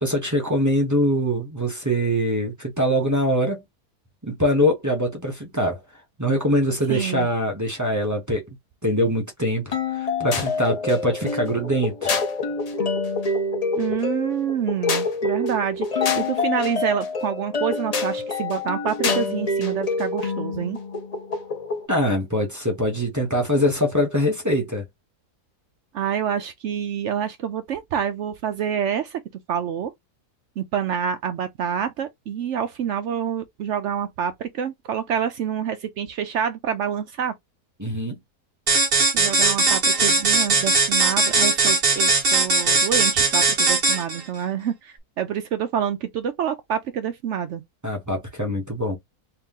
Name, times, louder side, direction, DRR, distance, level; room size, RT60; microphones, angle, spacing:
voice 1, 0.0-3.6 4.2-5.8 6.2-8.4 8.8-12.2 21.9-24.9 37.8-38.2 47.8-49.0, equal, 20° right, 0.6 m, -23 dB
voice 2, 6.9-7.3 13.8-20.8 25.9-29.2 29.5-29.9 30.6-37.3 39.1-47.6, right 8 dB, 70° right, 0.7 m, -27 dB
sound 1, 9.7-21.9, left 3 dB, 70° left, 0.3 m, -26 dB
sound 2, 38.7-44.2, right 3 dB, 40° right, 1.2 m, -19 dB
3.4 x 2.9 x 3.6 m
omnidirectional pair, 1.7 m